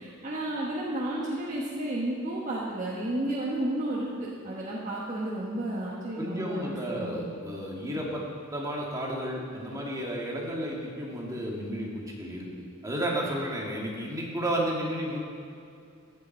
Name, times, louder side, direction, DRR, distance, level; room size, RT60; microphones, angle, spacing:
voice 1, 0.0-7.3, right 1 dB, 35° right, -5 dB, 1.3 m, -32 dB
voice 2, 6.1-8.2 8.5-15.2, equal, 15° right, -3 dB, 1.9 m, -32 dB
15.0 x 8.6 x 4.5 m, 2.4 s
head